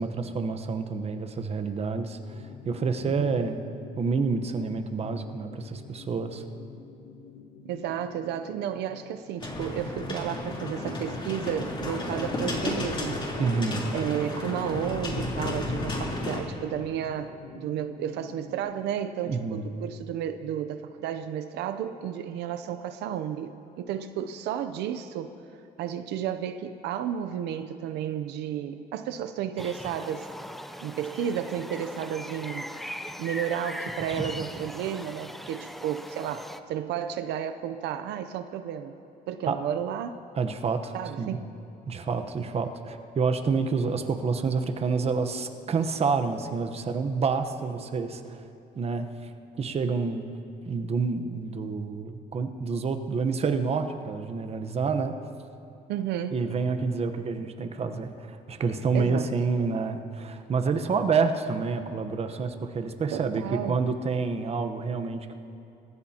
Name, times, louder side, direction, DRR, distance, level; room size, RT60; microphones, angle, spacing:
voice 1, 0.0-3.6 4.0-6.4 13.4-13.8 19.2-19.6 39.5-39.6 40.4-41.4 41.9-48.5 48.7-49.1 49.6-50.2 50.7-55.1 56.3-65.4, right 5 dB, 35° right, 7 dB, 1.0 m, -28 dB
sound 1, 2.3-18.6, left 6 dB, 80° left, 1.4 m, -48 dB
voice 2, 3.0-3.4 7.6-13.2 13.9-25.3 25.8-30.3 30.8-32.7 33.2-38.9 39.3-40.2 40.9-41.5 55.9-56.4 58.9-59.3 63.1-63.8, right 9 dB, 80° right, 9 dB, 0.7 m, -32 dB
sound 2, 9.4-16.4, left 2 dB, 30° left, 3.5 m, -32 dB
sound 3, 29.6-36.6, equal, ahead, 0.6 m, -39 dB
28.0 x 15.0 x 2.9 m, 2.6 s
cardioid pair, 110°, 17 cm